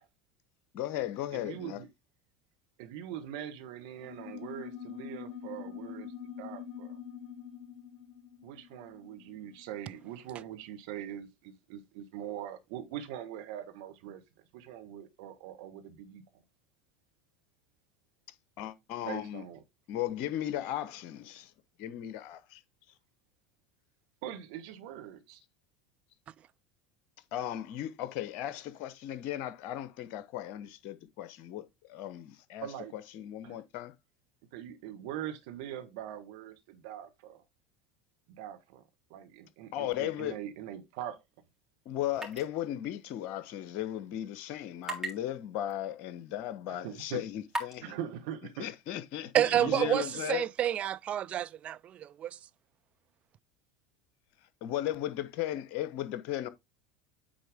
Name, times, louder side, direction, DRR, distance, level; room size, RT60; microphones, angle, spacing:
voice 1, 0.7-1.8 18.6-19.4 19.9-21.5 21.8-22.6 27.3-32.7 32.9-33.9 39.7-40.4 41.8-47.9 48.6-50.4 54.6-56.5, left 12 dB, 60° left, 1.0 m, -36 dB
voice 2, 1.3-1.9 2.8-7.0 8.4-14.2 14.5-16.4 19.1-19.6 24.2-25.4 32.6-32.9 33.4-33.6 34.5-37.4 38.3-38.8 39.1-41.2 46.7-47.2 47.8-48.7 49.3-50.0, right 10 dB, 65° right, 1.4 m, -42 dB
sound 1, 4.0-9.9, left 8 dB, 40° left, 2.4 m, -45 dB
sound 2, 42.2-42.4 42.7-42.8 44.8-45.1 45.7-45.8 46.5-46.6 47.5-47.8, right 1 dB, 15° right, 3.6 m, -35 dB
voice 3, 49.3-52.4, right 11 dB, 40° right, 0.4 m, -29 dB
9.1 x 4.3 x 3.5 m
hypercardioid pair, 75°, 3 cm